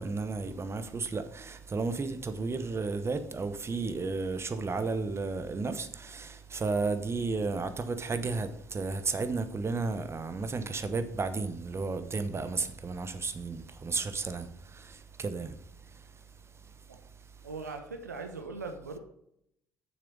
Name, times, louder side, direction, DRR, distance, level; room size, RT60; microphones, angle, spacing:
voice 1, 0.0-16.2 16.6-16.7, right 4 dB, 30° right, 1.0 m, -33 dB
voice 2, 17.4-19.0, right 3 dB, 90° right, 0.8 m, -40 dB
6.9 x 6.6 x 5.4 m
figure-of-eight pair, 55°, 9 cm